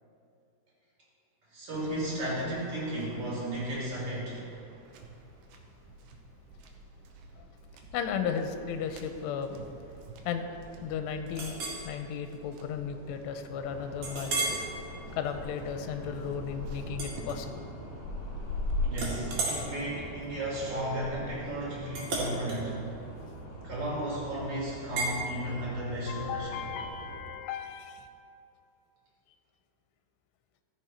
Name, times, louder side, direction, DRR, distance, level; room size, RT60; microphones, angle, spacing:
voice 1, 1.5-4.4 18.8-22.8 23.6-26.6, right 1 dB, 35° right, -7 dB, 3.5 m, -34 dB
Waves surf, 1.7-17.4, right 3 dB, 80° right, 2.0 m, -49 dB
voice 2, 7.9-9.7 10.3-10.5 10.8-11.6 11.8-14.6 15.2-17.7 20.1-20.2 25.5-25.7 26.1-28.1, left 7 dB, 85° left, 7 dB, 2.8 m, -35 dB
Chink clink, 11.4-11.8 12.4-12.5 13.0-13.1 14.0-14.7 15.2-15.5 16.9-17.9 18.2-18.6 18.9-24.0 25.0-25.2, right 2 dB, 55° right, 3.0 m, -35 dB
sound 1, 13.6-27.2, left 1 dB, 50° left, 2.2 m, -40 dB
14.5 x 6.6 x 4.4 m, 2.5 s
omnidirectional pair, 4.9 m